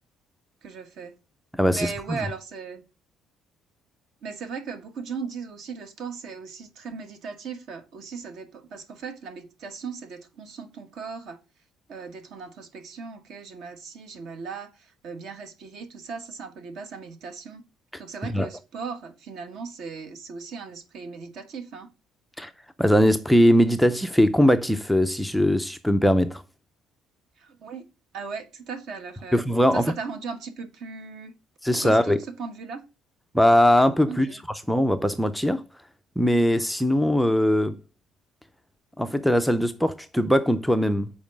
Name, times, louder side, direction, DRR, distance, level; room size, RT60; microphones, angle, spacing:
voice 1, 0.6-1.2 1.7-2.8 4.2-11.4 11.9-17.6 18.0-21.9 27.4-27.8 28.1-29.4 29.7-31.3 31.8-32.8 34.1-34.4, right 5 dB, 60° right, 1.6 m, -37 dB
voice 2, 1.5-2.2 18.2-18.5 22.4-22.5 22.8-26.4 29.3-29.9 31.6-32.2 33.3-34.3 34.7-35.6 36.2-37.8 39.0-41.1, equal, ahead, 0.4 m, -20 dB
7.1 x 4.6 x 6.2 m
cardioid pair, 165°, 0 cm